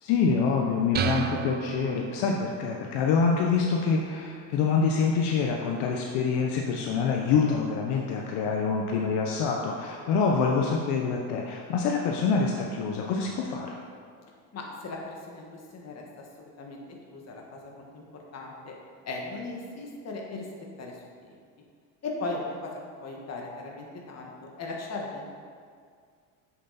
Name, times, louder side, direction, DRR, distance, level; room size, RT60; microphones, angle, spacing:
voice 1, 0.0-13.8, left 5 dB, 65° left, 0 dB, 0.9 m, -26 dB
sound 1, 0.9-2.6, right 8 dB, 25° right, 0.4 m, -31 dB
voice 2, 14.5-15.5 15.7-16.0 16.4-16.8 17.1-18.7 19.0-20.5 20.8-21.4 22.0-22.7 23.0-25.3, left 3 dB, 35° left, -1 dB, 1.7 m, -38 dB
7.8 x 7.2 x 4.2 m, 2.1 s
supercardioid pair, 115°, 44 cm